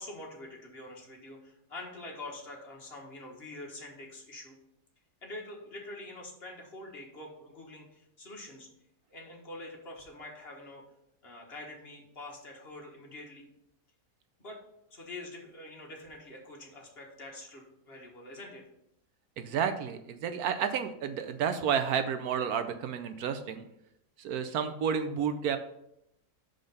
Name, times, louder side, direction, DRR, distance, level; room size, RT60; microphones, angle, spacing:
voice 1, 0.0-4.6 5.2-8.7 9.1-10.8 11.2-13.5 14.4-14.6 14.9-18.6, left 2 dB, 40° left, -1 dB, 1.5 m, -45 dB
voice 2, 19.4-23.7 24.2-25.6, right 7 dB, 75° right, 9 dB, 1.1 m, -31 dB
5.7 x 5.1 x 5.3 m, 0.79 s
omnidirectional pair, 1.7 m